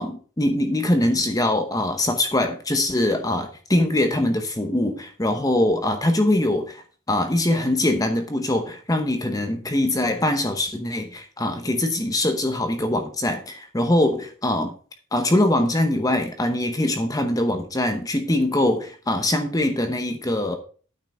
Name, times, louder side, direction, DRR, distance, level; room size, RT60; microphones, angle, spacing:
voice 1, 0.0-6.8 7.1-14.7 15.1-20.6, left 1 dB, 15° left, 0.9 m, -22 dB
9.2 x 5.7 x 5.4 m
head